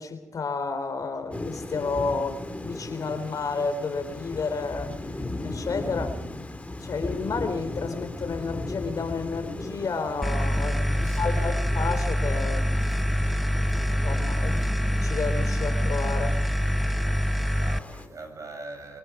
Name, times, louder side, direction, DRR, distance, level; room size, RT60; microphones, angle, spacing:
voice 1, 0.0-6.2 6.8-12.8 14.0-16.4, left 4 dB, 60° left, 3.8 m, -31 dB
Thunder / Rain, 1.3-18.1, left 2 dB, 20° left, 3.6 m, -37 dB
sound 1, 10.2-17.8, equal, ahead, 1.0 m, -25 dB
voice 2, 10.9-11.6 14.3-14.7 17.5-19.0, right 2 dB, 50° right, 7.8 m, -42 dB
25.5 x 19.5 x 6.0 m
supercardioid pair, 45°, 7 cm